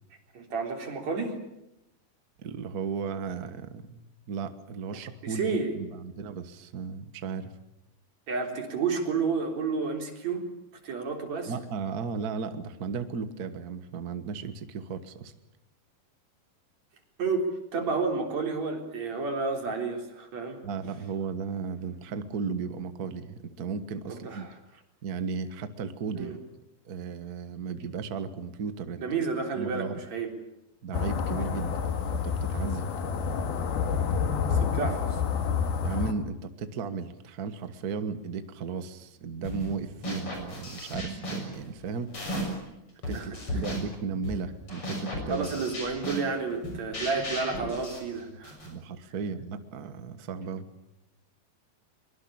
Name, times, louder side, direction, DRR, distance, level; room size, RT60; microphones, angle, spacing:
voice 1, 0.3-1.4 5.2-5.7 8.3-10.4 10.8-11.5 17.2-17.5 17.7-20.6 24.1-24.5 26.2-26.4 29.0-30.3 34.5-35.2 43.1-43.3 45.3-48.7, right 4 dB, 50° right, 3 dB, 4.8 m, -31 dB
voice 2, 2.4-7.5 11.5-15.3 20.6-24.5 25.0-26.4 26.8-29.0 29.6-30.0 30.8-31.7 32.1-32.9 34.8-35.0 35.8-42.1 43.1-45.5 48.6-50.7, right 5 dB, 85° right, 10 dB, 0.8 m, -35 dB
sound 1, 30.9-36.1, left 6 dB, 85° left, 3.7 m, -28 dB
sound 2, 39.4-39.7 40.0-42.7 43.0-48.7, equal, 35° left, 7.3 m, -36 dB
23.0 x 23.0 x 8.7 m, 0.89 s
omnidirectional pair, 4.2 m